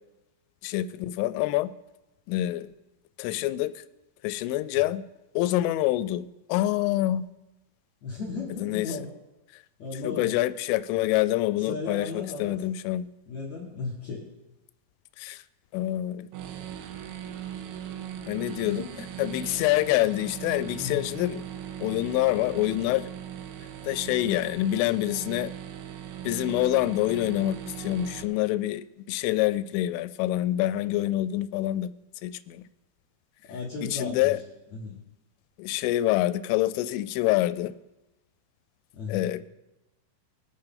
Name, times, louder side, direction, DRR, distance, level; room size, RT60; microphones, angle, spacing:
voice 1, 0.6-1.7 2.3-2.7 3.2-3.8 4.2-5.0 5.4-7.3 8.6-8.9 10.0-13.1 15.2-15.4 15.7-16.3 18.3-18.9 19.2-21.4 21.8-23.1 23.8-25.5 26.2-31.9 32.2-32.6 33.8-34.4 35.6-37.7 39.1-39.4, left 15 dB, 85° left, 14 dB, 3.1 m, -26 dB
voice 2, 8.0-9.1 9.8-10.4 11.6-12.6 13.3-14.3 18.7-19.3 20.8-21.1 33.5-34.3 34.7-35.0 38.9-39.3, left 4 dB, 70° left, -3 dB, 1.6 m, -36 dB
sound 1, 16.3-28.2, right 10 dB, 85° right, 3.2 m, -39 dB
22.5 x 9.0 x 3.8 m, 1.0 s
omnidirectional pair, 5.6 m